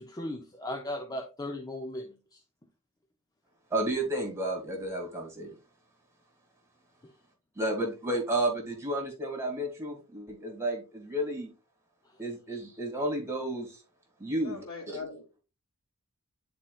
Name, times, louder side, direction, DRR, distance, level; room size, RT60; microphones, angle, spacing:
voice 1, 0.0-2.1, left 1 dB, 15° left, 0.6 m, -36 dB
voice 2, 3.7-5.5 7.6-11.5 12.2-13.8 14.2-15.0, right 1 dB, 10° right, 2.0 m, -32 dB
voice 3, 14.4-15.4, left 4 dB, 80° left, 2.5 m, -41 dB
10.5 x 4.3 x 2.4 m
head